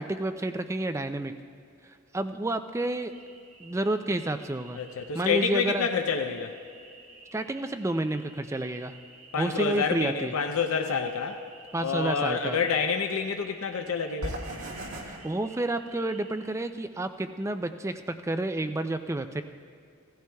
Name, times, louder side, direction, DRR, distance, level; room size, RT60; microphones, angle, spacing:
voice 1, 0.0-1.3 2.1-3.1 3.6-4.8 5.1-5.9 7.3-8.9 9.4-10.3 11.7-12.6 15.1-19.4, right 1 dB, 15° right, 9 dB, 0.3 m, -30 dB
sound 1, 3.1-16.5, right 1 dB, 80° right, 1.7 m, -46 dB
voice 2, 4.7-6.5 9.3-11.4 11.8-14.4, left 5 dB, 75° left, 5 dB, 0.6 m, -28 dB
17.0 x 15.0 x 2.3 m, 2.3 s
head